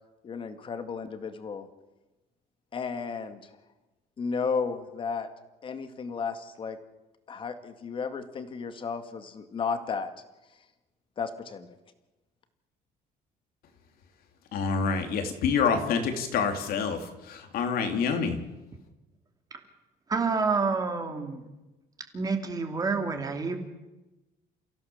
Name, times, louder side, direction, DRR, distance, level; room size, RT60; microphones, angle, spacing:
voice 1, 0.2-1.7 2.7-3.5 4.2-5.3 5.6-6.8 7.3-10.1 11.2-11.7, left 5 dB, 30° left, 9 dB, 2.0 m, -33 dB
voice 2, 14.5-17.0 17.3-18.4, left 6 dB, 65° left, 6 dB, 3.4 m, -27 dB
voice 3, 20.1-21.5 22.1-23.6, right 4 dB, 20° right, 5 dB, 2.7 m, -28 dB
30.0 x 16.0 x 7.2 m, 1.1 s
cardioid pair, 170°, 17 cm